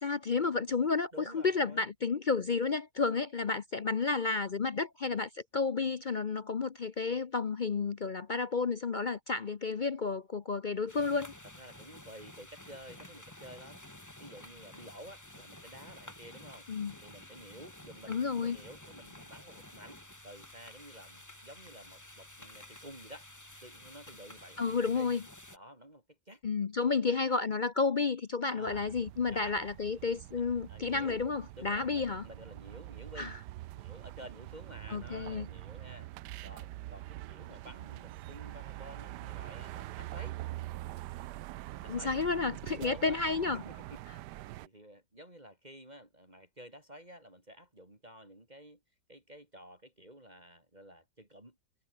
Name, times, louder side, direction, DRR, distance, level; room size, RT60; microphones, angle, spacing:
voice 1, 0.0-11.3 16.7-16.9 18.1-18.6 24.6-25.2 26.4-32.2 33.2-33.3 34.9-35.5 41.9-43.6, left 4 dB, 50° left, 0.6 m, -31 dB
voice 2, 1.1-1.9 11.6-13.8 14.2-16.7 17.0-23.3 23.6-25.1 25.5-26.4 28.5-28.9 29.3-29.5 30.7-31.2 31.6-33.3 33.7-36.1 36.4-40.4 41.8-42.1 42.8-43.2 43.5-44.0 44.3-48.8 49.1-51.6, equal, 25° right, 5.6 m, -51 dB
sound 1, 10.9-25.6, left 1 dB, 10° left, 2.2 m, -52 dB
sound 2, 28.7-44.7, right 16 dB, 80° right, 1.2 m, -44 dB
omnidirectional pair, 1.8 m